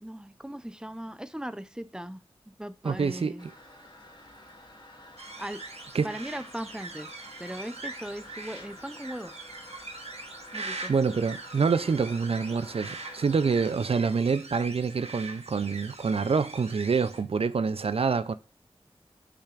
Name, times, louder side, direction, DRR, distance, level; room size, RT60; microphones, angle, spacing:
voice 1, 0.0-2.2 2.6-3.5 5.4-5.6 6.0-7.1 7.4-9.3 10.5-10.9, right 1 dB, 5° right, 0.6 m, -38 dB
voice 2, 2.8-3.5 5.9-6.1 10.9-18.3, right 5 dB, 70° right, 0.4 m, -26 dB
Toilet flush, 3.4-13.7, left 1 dB, 45° left, 1.7 m, -49 dB
sound 1, 5.2-17.2, right 3 dB, 85° right, 1.1 m, -42 dB
6.7 x 5.7 x 2.4 m
wide cardioid pair, 50°, 10 cm